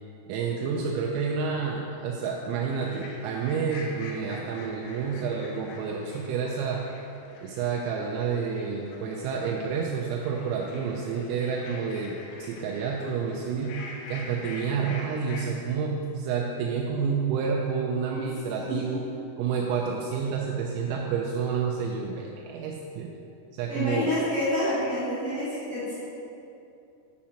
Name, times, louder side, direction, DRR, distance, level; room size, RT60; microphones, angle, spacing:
voice 1, 0.3-6.8 7.4-13.8 14.1-19.0 19.4-23.1 23.5-24.1, right 6 dB, 85° right, -1 dB, 3.2 m, -29 dB
sound 1, 2.7-15.5, left 3 dB, 85° left, 3.3 m, -46 dB
voice 2, 23.7-26.0, left 1 dB, 55° right, -14 dB, 2.1 m, -28 dB
9.5 x 7.3 x 2.8 m, 2.7 s
omnidirectional pair, 5.9 m